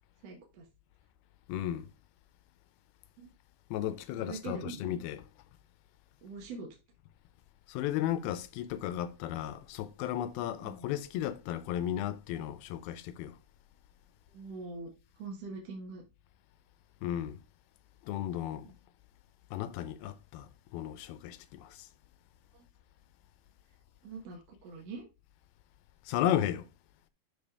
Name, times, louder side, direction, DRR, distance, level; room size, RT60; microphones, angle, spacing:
voice 1, 0.2-0.6 3.2-3.3 3.9-5.0 6.2-6.7 10.6-10.9 14.3-14.9 15.2-16.0 18.6-18.7 22.5-22.6 24.0-25.1, right 4 dB, 60° right, 1.8 m, -43 dB
voice 2, 1.5-1.9 3.7-5.2 7.7-13.4 17.0-17.4 18.0-18.7 19.5-21.9 26.1-26.7, left 11 dB, 80° left, 2.5 m, -34 dB
12.0 x 4.2 x 3.5 m
omnidirectional pair, 4.5 m